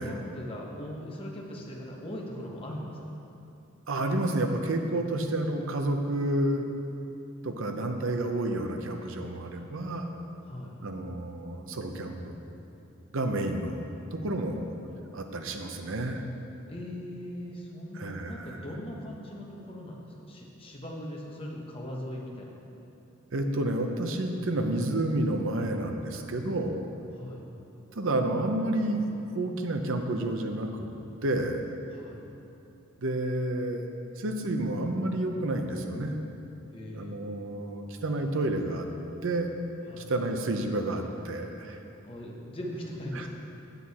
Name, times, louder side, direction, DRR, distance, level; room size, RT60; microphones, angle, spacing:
voice 1, 0.0-3.1 10.4-10.8 16.7-22.5 27.2-27.4 31.9-32.2 36.7-37.2 39.9-40.1 42.0-43.3, equal, 25° left, -2 dB, 1.0 m, -40 dB
voice 2, 3.9-6.7 7.4-10.1 10.8-12.4 13.1-14.6 15.1-16.3 17.9-18.6 23.3-26.8 27.9-30.9 31.2-31.6 33.0-33.8 34.2-36.2 36.9-38.9 39.2-39.5 40.0-41.8 43.1-43.3, right 1 dB, 60° right, 5 dB, 0.7 m, -30 dB
8.2 x 7.7 x 4.2 m, 2.8 s
head